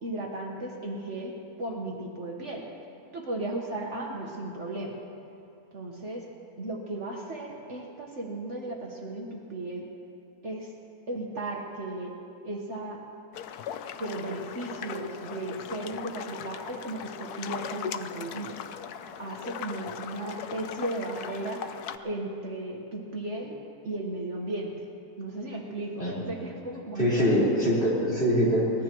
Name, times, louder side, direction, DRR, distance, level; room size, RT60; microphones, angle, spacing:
voice 1, 0.0-2.6 3.1-4.9 5.7-6.3 6.6-9.9 10.4-10.7 11.1-12.1 12.4-13.0 13.9-18.6 19.2-21.6 22.0-23.6 23.8-24.9 25.2-27.3, right 2 dB, 50° right, -1 dB, 1.6 m, -35 dB
sound 1, 13.3-22.0, left 8 dB, 85° left, 1.2 m, -39 dB
voice 2, 27.0-28.8, equal, 40° left, -7 dB, 4.6 m, -24 dB
23.5 x 19.0 x 3.0 m, 2.6 s
omnidirectional pair, 1.6 m